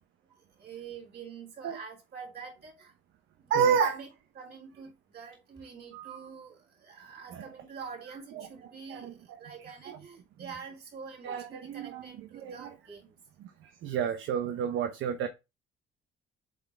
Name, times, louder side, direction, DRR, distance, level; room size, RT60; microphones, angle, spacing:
voice 1, 0.6-2.9 3.4-4.1 4.3-9.1 9.4-13.2, right 6 dB, 55° right, 3.6 m, -45 dB
voice 2, 3.5-3.9 5.9-6.2 7.3-7.4 8.4-8.5 8.9-9.1 9.9-10.0 11.2-12.7 13.6-15.3, right 7 dB, 85° right, 1.0 m, -30 dB
8.1 x 4.1 x 3.5 m
cardioid pair, 90°, 20 cm